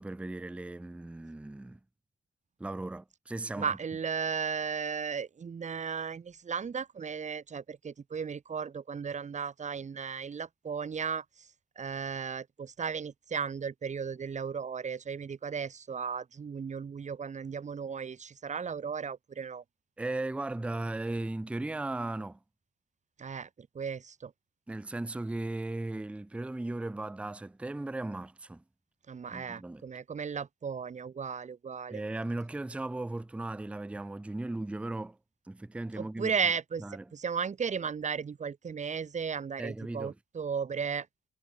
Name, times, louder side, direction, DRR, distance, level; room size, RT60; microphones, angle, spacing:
voice 1, 0.0-1.8 2.6-3.7 20.0-22.4 24.7-28.6 29.3-29.8 31.9-35.2 35.5-36.4 36.8-37.0 39.6-40.1, right 2 dB, 5° right, 0.5 m, -37 dB
voice 2, 3.5-11.5 11.8-19.6 23.2-24.3 29.1-32.0 36.0-41.1, right 6 dB, 35° right, 1.4 m, -35 dB
cardioid pair, 90°, 20 cm